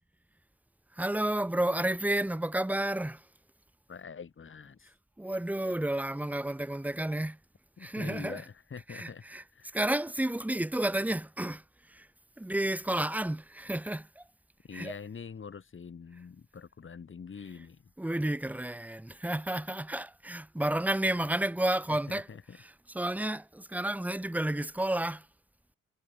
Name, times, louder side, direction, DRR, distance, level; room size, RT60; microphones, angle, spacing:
voice 1, 0.9-3.3 5.2-7.4 7.8-8.4 8.9-9.4 9.7-12.1 12.4-14.3 14.7-14.9 18.0-22.3 22.6-25.3, right 1 dB, 5° right, 1.3 m, -31 dB
voice 2, 3.9-4.9 7.8-9.2 9.5-9.7 14.7-17.9 21.9-22.6, left 6 dB, 40° left, 7.0 m, -45 dB
cardioid pair, 90°, 30 cm